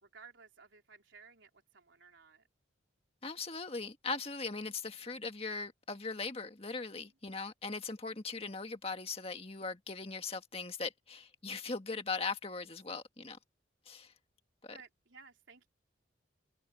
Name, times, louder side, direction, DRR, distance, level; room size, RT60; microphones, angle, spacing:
voice 1, 0.0-2.5 6.9-7.1 14.7-15.7, right 5 dB, 75° right, 3.7 m, -57 dB
voice 2, 3.2-13.4 13.9-14.1 14.6-14.8, left 4 dB, 30° left, 1.7 m, -39 dB
head